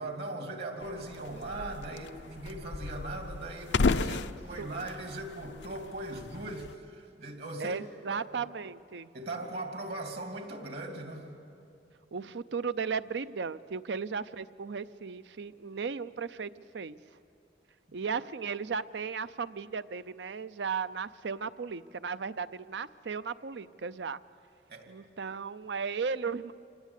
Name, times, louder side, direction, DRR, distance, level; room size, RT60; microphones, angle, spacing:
voice 1, 0.0-7.8 8.1-8.2 9.1-11.3 24.7-24.9, right 2 dB, 65° right, 3 dB, 2.8 m, -39 dB
sound 1, 0.8-6.7, left 3 dB, 90° left, 0.6 m, -34 dB
voice 2, 3.9-4.7 7.6-9.1 12.1-17.0 17.9-24.2 24.9-26.5, right 5 dB, 80° right, 14 dB, 0.6 m, -36 dB
26.0 x 18.5 x 8.3 m, 2.6 s
head